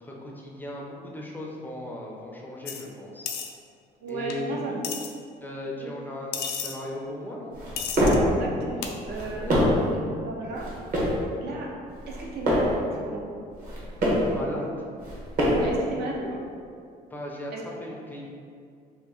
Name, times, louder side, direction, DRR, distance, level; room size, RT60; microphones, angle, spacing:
voice 1, 0.0-3.3 4.1-4.8 5.4-7.5 9.4-9.6 14.3-14.7 17.1-17.5 17.8-18.3, left 1 dB, 10° left, -3 dB, 0.4 m, -37 dB
sound 1, 2.7-2.8 3.3-3.5 4.3-4.4 4.8-5.1 6.3-6.7 7.8-8.2 8.8-8.9, left 7 dB, 85° left, 0.4 m, -32 dB
voice 2, 4.0-4.7 5.8-5.9 8.3-9.8 10.2-10.7 11.4-11.7 12.1-13.3 15.5-16.4 17.5-17.6, right 2 dB, 70° right, -2 dB, 0.7 m, -34 dB
sound 2, 7.5-8.3 9.0-9.9 10.5-11.2 11.9-12.8 13.5-14.3 15.0-15.8, equal, 55° right, 1.1 m, -25 dB
2.9 x 2.4 x 3.7 m, 2.3 s
cardioid pair, 110°, 17 cm